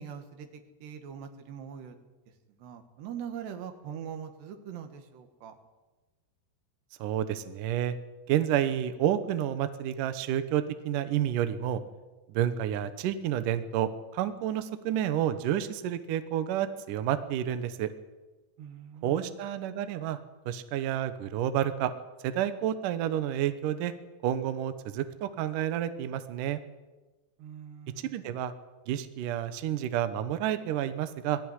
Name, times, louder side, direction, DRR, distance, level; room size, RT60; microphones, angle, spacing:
voice 1, 0.0-2.0 2.6-5.6 18.6-19.3 27.4-28.3, right 8 dB, 65° right, 7 dB, 3.7 m, -42 dB
voice 2, 7.0-8.0 8.3-11.8 12.3-17.9 19.0-20.2 20.5-21.9 22.2-23.9 24.2-26.6 28.0-28.5 28.9-31.4, right 11 dB, 85° right, 11 dB, 1.9 m, -30 dB
20.5 x 14.5 x 9.8 m, 1.2 s
omnidirectional pair, 5.4 m